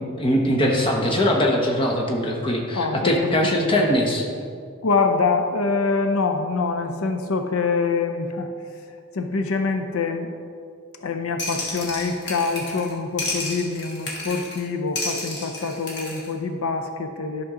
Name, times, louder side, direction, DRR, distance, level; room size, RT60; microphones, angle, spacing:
voice 1, 0.0-4.3, left 1 dB, 25° left, 0 dB, 1.0 m, -21 dB
voice 2, 2.7-3.5 4.8-8.5 9.1-10.3 11.0-17.4, left 4 dB, 80° left, 6 dB, 0.6 m, -25 dB
sound 1, 11.4-12.9 13.2-14.6 15.0-16.3, left 2 dB, 50° left, 1.6 m, -31 dB
11.0 x 6.0 x 3.8 m, 2.3 s
head